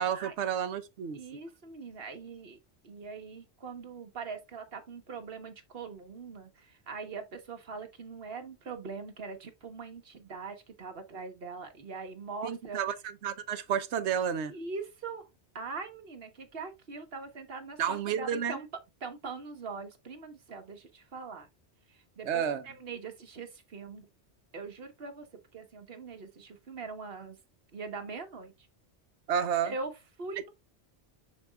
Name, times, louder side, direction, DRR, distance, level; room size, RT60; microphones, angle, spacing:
voice 1, 0.0-1.2 12.4-14.5 17.8-18.6 22.3-22.6 29.3-29.7, right 8 dB, 80° right, 1.1 m, -31 dB
voice 2, 1.1-2.6 2.8-12.8 14.5-15.2 15.5-18.7 19.0-21.5 21.9-24.1 24.5-25.3 25.5-27.4 27.7-28.7 29.6-29.9 30.2-30.5, right 4 dB, 60° right, 1.4 m, -42 dB
6.9 x 6.4 x 2.3 m
omnidirectional pair, 1.1 m